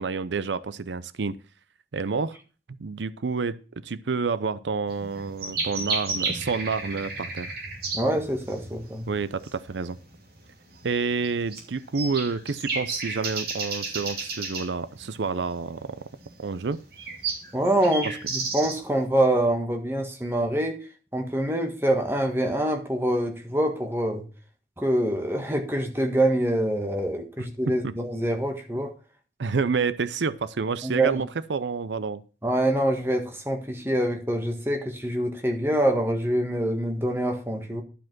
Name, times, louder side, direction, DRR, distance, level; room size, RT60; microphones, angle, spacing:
voice 1, 0.0-1.4 1.9-2.4 2.8-7.5 9.1-10.0 10.8-16.0 16.4-16.8 18.0-18.2 27.8-27.9 29.4-32.2, right 4 dB, 85° right, 15 dB, 0.6 m, -29 dB
sound 1, 4.9-19.0, right 4 dB, 55° right, 2.8 m, -33 dB
voice 2, 7.9-9.1 17.5-20.7 21.1-24.2 24.8-28.9 30.8-31.1 32.4-37.8, right 1 dB, 15° right, 4 dB, 1.5 m, -25 dB
12.0 x 5.0 x 6.0 m, 0.36 s
head